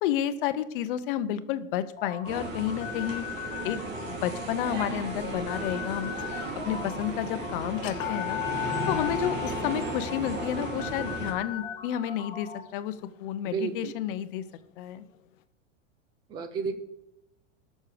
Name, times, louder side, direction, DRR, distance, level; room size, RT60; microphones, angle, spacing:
voice 1, 0.0-3.3 3.6-3.8 4.1-6.1 6.7-8.4 8.9-14.4 14.8-15.0, left 11 dB, 45° left, 12 dB, 0.8 m, -31 dB
sound 1, 2.0-12.6, left 8 dB, 20° left, 3.0 m, -40 dB
sound 2, 2.2-11.3, right 2 dB, 85° right, 3.3 m, -35 dB
sound 3, 6.1-6.7 7.0-7.1 7.7-13.6, left 16 dB, 85° left, 0.9 m, -38 dB
voice 2, 13.4-14.0 16.3-16.7, right 6 dB, 10° right, 9 dB, 0.4 m, -32 dB
18.0 x 6.5 x 5.0 m, 0.87 s
supercardioid pair, 165°, 38 cm